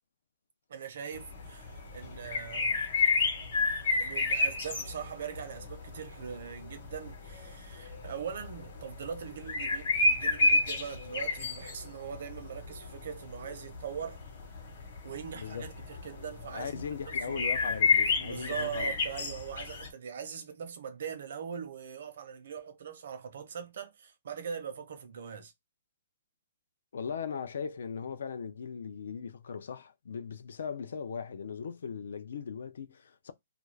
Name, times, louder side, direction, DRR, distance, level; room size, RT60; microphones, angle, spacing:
voice 1, 0.7-2.8 4.0-14.2 15.0-17.5 18.2-25.5, right 7 dB, 55° right, 0.7 m, -41 dB
sound 1, 1.1-19.9, left 3 dB, 50° left, 1.0 m, -32 dB
voice 2, 15.3-15.7 16.5-18.9 26.9-33.3, left 6 dB, 70° left, 0.4 m, -38 dB
2.4 x 2.3 x 3.1 m
hypercardioid pair, 175°, 0 cm